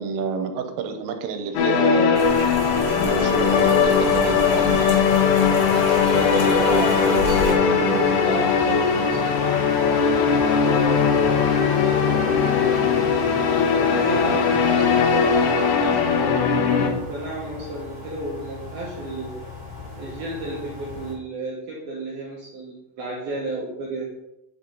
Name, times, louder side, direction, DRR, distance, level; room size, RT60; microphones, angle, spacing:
voice 1, 0.0-2.4 3.0-5.0 14.3-14.5, right 6 dB, 90° right, 6 dB, 3.5 m, -29 dB
sound 1, 1.6-16.9, left 6 dB, 75° left, 3.1 m, -20 dB
Rain, 2.1-7.5, equal, 20° right, 2.9 m, -30 dB
sound 2, 2.2-21.1, equal, 15° left, 1.9 m, -34 dB
voice 2, 6.1-12.9 13.7-19.5 20.0-24.0, right 2 dB, 65° right, -4 dB, 2.5 m, -33 dB
8.9 x 6.3 x 3.9 m, 0.86 s
omnidirectional pair, 5.6 m